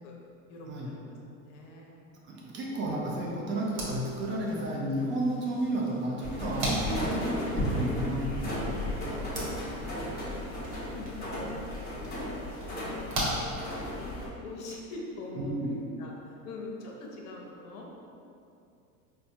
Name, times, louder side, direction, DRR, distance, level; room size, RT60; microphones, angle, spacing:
voice 1, 0.5-1.2 1.4-2.0 6.8-7.2 9.5-9.7 10.2-11.4 11.7-12.6 12.9-13.6 13.9-16.1 16.4-17.9, left 2 dB, 55° left, -1 dB, 0.8 m, -43 dB
voice 2, 2.2-7.2 7.5-8.9 15.4-15.8, right 1 dB, 25° right, -3 dB, 0.5 m, -32 dB
sound 1, 3.6-14.2, right 1 dB, 45° right, 1.1 m, -39 dB
sound 2, 6.2-14.3, left 1 dB, 20° left, 1.0 m, -34 dB
4.2 x 2.2 x 2.6 m, 2.5 s
hypercardioid pair, 95°, 44 cm